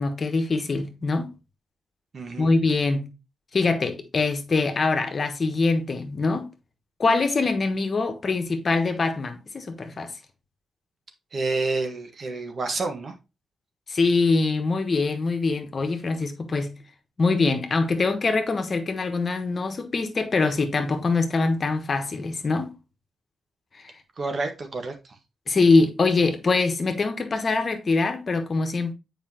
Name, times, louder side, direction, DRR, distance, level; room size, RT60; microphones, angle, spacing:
voice 1, 0.0-1.3 2.4-3.1 3.5-6.5 7.0-10.1 13.9-16.7 17.2-22.7 23.8-23.9 25.5-28.9, left 3 dB, 50° left, 1.3 m, -23 dB
voice 2, 2.1-2.5 11.3-13.1 24.2-25.1, right 3 dB, 55° right, 1.6 m, -29 dB
7.3 x 5.1 x 2.9 m
cardioid pair, 60°, 0 cm